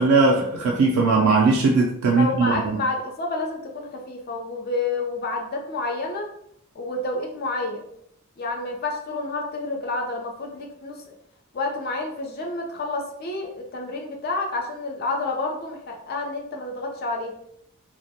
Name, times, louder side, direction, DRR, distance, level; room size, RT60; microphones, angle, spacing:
voice 1, 0.0-2.8, right 3 dB, 90° right, 0.3 m, -19 dB
voice 2, 2.1-6.3 6.8-7.8 8.4-11.1 11.5-17.3, left 3 dB, 45° left, 0.5 m, -29 dB
2.1 x 2.1 x 2.7 m
head